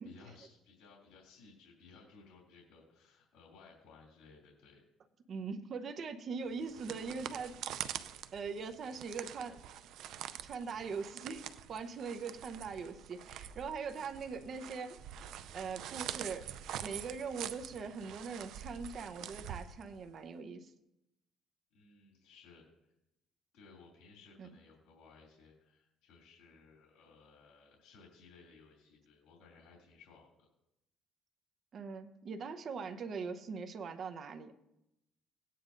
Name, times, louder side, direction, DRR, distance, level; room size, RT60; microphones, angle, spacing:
voice 1, 0.0-4.8 21.7-22.6 23.5-30.5, left 4 dB, 80° left, -3 dB, 2.8 m, -59 dB
voice 2, 5.3-7.6 8.3-9.6 10.4-15.0 15.5-16.5 16.8-20.7 24.4-24.5 31.7-34.5, right 5 dB, 50° right, 6 dB, 0.9 m, -41 dB
sound 1, 6.5-20.2, right 10 dB, 75° right, 0.5 m, -45 dB
17.5 x 9.3 x 2.6 m, 0.86 s
cardioid pair, 115°, 0 cm